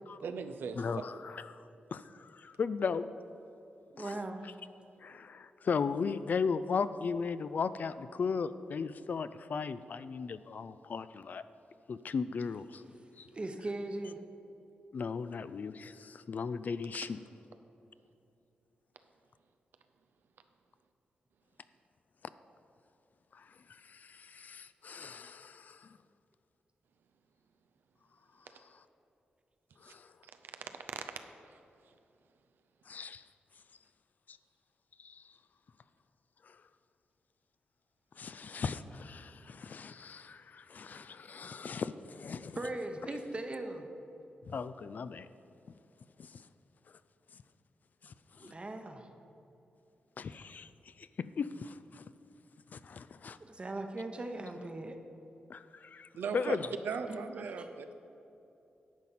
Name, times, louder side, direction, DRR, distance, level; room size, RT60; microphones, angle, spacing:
voice 1, 0.2-0.8 30.4-31.0 31.4-31.6 56.1-56.6 56.8-57.9, right 6 dB, 90° right, 8 dB, 0.5 m, -38 dB
voice 2, 0.8-3.1 4.0-4.5 5.0-11.4 11.9-12.8 13.2-13.3 14.9-17.2 23.3-26.0 29.8-30.1 32.9-33.2 34.3-34.4 35.0-35.2 36.4-36.6 38.2-42.6 44.5-45.3 46.2-46.4 48.0-48.5 50.2-52.0 52.7-53.4 55.5-56.7, left 5 dB, 55° left, 13 dB, 0.3 m, -37 dB
voice 3, 3.9-4.5 13.3-14.2 42.6-43.9 48.4-49.1 53.4-54.9 57.1-57.7, right 2 dB, 30° right, 5 dB, 0.9 m, -39 dB
10.5 x 4.1 x 7.3 m, 2.8 s
cardioid pair, 85°, 3 cm